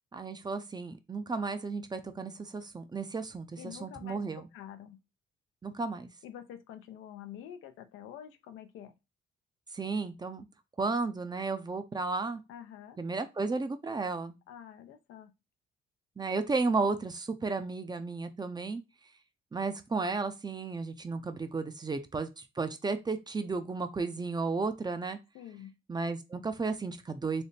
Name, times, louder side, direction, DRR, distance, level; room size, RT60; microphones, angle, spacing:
voice 1, 0.1-4.4 5.6-6.1 9.7-10.4 10.8-12.4 13.0-14.4 16.2-18.8 19.5-25.2 25.9-27.4, right 4 dB, 20° right, 0.5 m, -33 dB
voice 2, 3.6-5.0 6.2-8.9 12.5-13.0 14.5-15.3 25.3-25.8, left 10 dB, 90° left, 0.5 m, -47 dB
3.3 x 2.1 x 4.0 m
cardioid pair, 90°, 20 cm